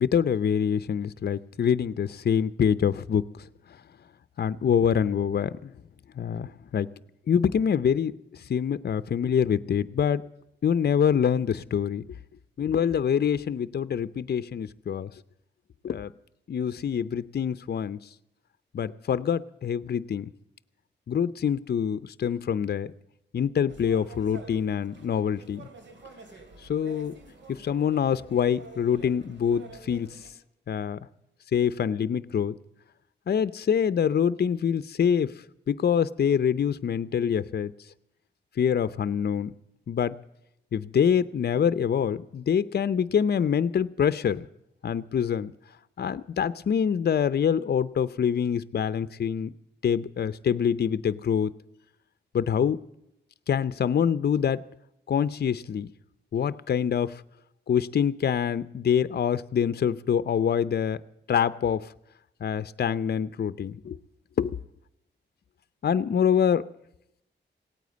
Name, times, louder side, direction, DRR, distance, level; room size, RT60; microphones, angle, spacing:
voice 1, 0.0-3.2 4.4-5.7 6.2-6.9 7.3-10.2 10.6-12.2 12.6-15.1 15.8-16.1 16.5-18.0 18.7-20.3 21.1-22.9 23.3-25.7 26.7-27.1 27.5-30.2 30.7-31.0 31.5-32.5 33.3-35.3 35.7-37.7 38.6-39.5 39.9-40.2 40.7-44.4 44.8-45.5 46.0-49.5 49.8-51.5 52.3-52.8 53.5-54.6 55.1-55.9 56.3-57.2 57.7-61.0 61.3-61.9 62.4-64.0 64.4-64.6 65.8-66.7, left 8 dB, 60° left, 15 dB, 0.6 m, -25 dB
sound 1, 23.7-30.3, right 4 dB, 80° right, 2.6 m, -48 dB
17.0 x 9.3 x 8.4 m, 0.81 s
cardioid pair, 70°, 19 cm